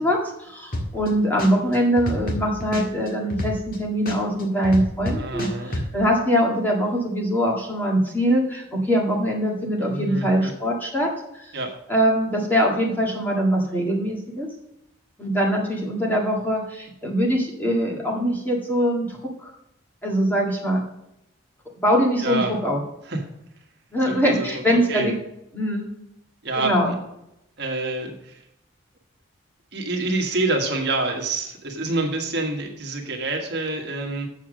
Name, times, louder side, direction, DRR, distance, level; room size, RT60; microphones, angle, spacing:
voice 1, 0.0-11.1 11.3-11.5 11.9-14.5 15.2-19.5 20.0-20.8 21.8-22.8 23.9-25.1 25.5-25.9 26.6-26.9, equal, 10° left, -2 dB, 1.8 m, -23 dB
sound 1, 0.7-1.1 1.4-3.8 4.1-5.9, left 1 dB, 45° left, 1.7 m, -27 dB
voice 2, 5.1-5.9 9.8-10.5 11.5-11.7 22.2-22.5 23.0-23.3 24.0-24.6 24.9-25.1 26.4-26.7 27.6-28.4 29.7-34.3, right 2 dB, 55° right, 2 dB, 1.6 m, -27 dB
7.3 x 7.2 x 6.3 m, 0.84 s
head